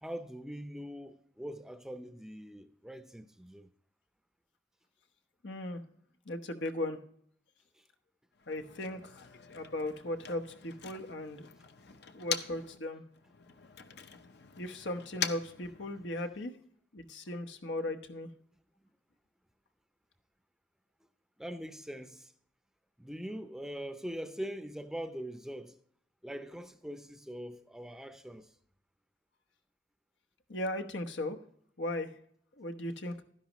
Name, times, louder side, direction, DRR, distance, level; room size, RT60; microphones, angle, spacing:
voice 1, 0.0-3.7 11.7-11.8 21.4-22.3 23.0-25.8 26.2-28.5, equal, 5° right, 0.5 m, -42 dB
voice 2, 5.4-5.8 6.3-7.0 8.5-9.2 9.5-11.5 12.1-13.0 14.6-16.5 16.9-18.3 30.5-31.4 31.8-32.1 32.6-33.2, left 1 dB, 90° left, 1.0 m, -37 dB
Motor vehicle (road), 8.3-12.8 13.1-16.4, left 8 dB, 65° left, 0.7 m, -43 dB
12.0 x 10.5 x 3.0 m
head